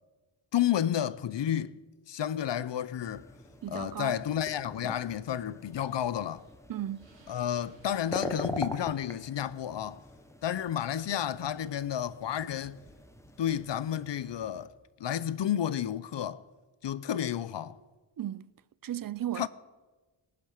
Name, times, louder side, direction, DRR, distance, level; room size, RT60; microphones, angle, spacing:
voice 1, 0.5-1.8 2.1-3.3 3.7-6.4 7.3-10.0 10.4-12.8 13.4-14.7 15.0-16.4 16.8-17.8 19.4-19.5, left 10 dB, 60° left, 0.7 m, -31 dB
sound 1, 3.0-14.7, left 1 dB, 5° left, 1.1 m, -43 dB
voice 2, 3.6-4.1 6.7-7.1 18.2-18.5 18.8-19.5, right 11 dB, 45° right, 0.5 m, -35 dB
Explosion, 5.8-9.6, right 4 dB, 60° right, 3.3 m, -64 dB
18.5 x 9.3 x 6.5 m
wide cardioid pair, 125°, 49 cm